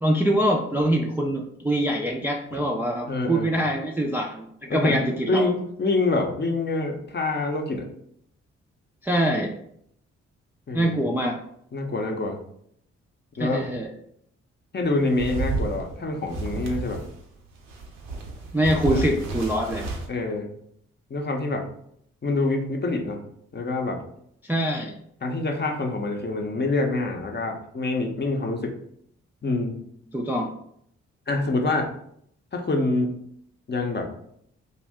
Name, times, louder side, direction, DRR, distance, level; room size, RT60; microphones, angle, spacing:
voice 1, 0.0-4.5 4.7-5.5 9.0-9.5 10.7-11.4 13.4-13.9 18.5-19.9 24.4-25.0 30.1-30.5, right 1 dB, 5° right, 0 dB, 0.4 m, -24 dB
voice 2, 3.1-3.5 4.7-7.9 10.7-10.9 11.7-12.4 13.4-13.7 14.7-17.0 18.9-19.0 20.1-20.5 21.1-21.7 22.2-23.2 23.5-24.0 25.2-28.7 29.4-29.8 31.3-31.9 32.5-33.1 33.7-34.1, left 2 dB, 35° left, 2 dB, 0.7 m, -26 dB
sound 1, 14.8-17.2 17.6-20.1, right 3 dB, 75° right, 0.7 m, -31 dB
2.6 x 2.1 x 3.4 m, 0.70 s
hypercardioid pair, 40°, 32 cm